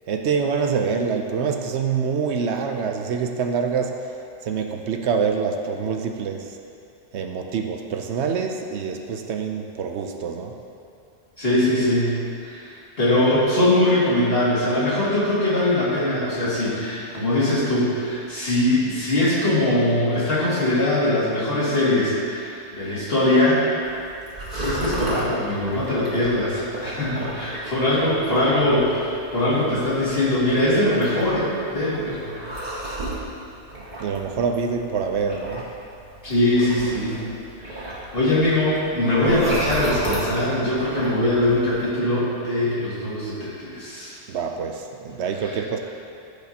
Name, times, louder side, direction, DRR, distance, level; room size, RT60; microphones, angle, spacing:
voice 1, 0.1-4.1 4.4-6.6 7.1-10.6 34.0-35.6 44.3-45.8, right 6 dB, 75° right, 4 dB, 0.9 m, -25 dB
voice 2, 11.4-23.6 24.5-32.4 36.2-37.2 37.6-44.1 45.4-45.6, left 1 dB, 55° left, -10 dB, 2.5 m, -22 dB
sound 1, 23.8-41.9, right 1 dB, 40° right, 1.8 m, -34 dB
14.0 x 5.0 x 2.8 m, 2.5 s
omnidirectional pair, 1.2 m